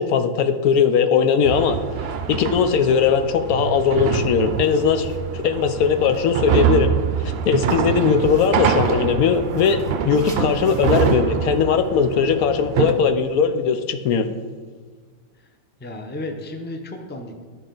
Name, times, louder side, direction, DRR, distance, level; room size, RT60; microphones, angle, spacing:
voice 1, 0.0-1.8 2.3-6.9 7.2-14.3, left 6 dB, 90° left, 9 dB, 1.1 m, -19 dB
sound 1, 1.4-12.9, right 8 dB, 65° right, 0.6 m, -25 dB
sound 2, 4.5-13.0, right 2 dB, 25° right, 0.8 m, -41 dB
voice 2, 15.3-17.4, left 2 dB, 15° left, 4 dB, 0.3 m, -34 dB
12.0 x 4.9 x 3.9 m, 1.5 s
omnidirectional pair, 1.5 m